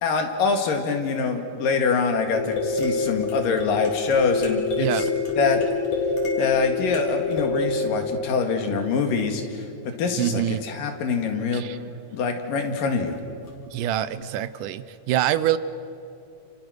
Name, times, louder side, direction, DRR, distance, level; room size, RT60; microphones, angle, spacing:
voice 1, 0.0-5.1 5.4-5.6 6.4-9.6 10.0-11.6 12.1-13.2, left 5 dB, 85° left, 4 dB, 3.7 m, -24 dB
sound 1, 2.3-9.2 13.5-13.6 14.0-14.1, left 4 dB, 60° left, 4.9 m, -27 dB
voice 2, 4.8-5.1 10.2-10.6 11.5-11.8 13.7-15.6, right 12 dB, 80° right, 14 dB, 2.3 m, -25 dB
30.0 x 29.0 x 6.4 m, 2.6 s
omnidirectional pair, 3.8 m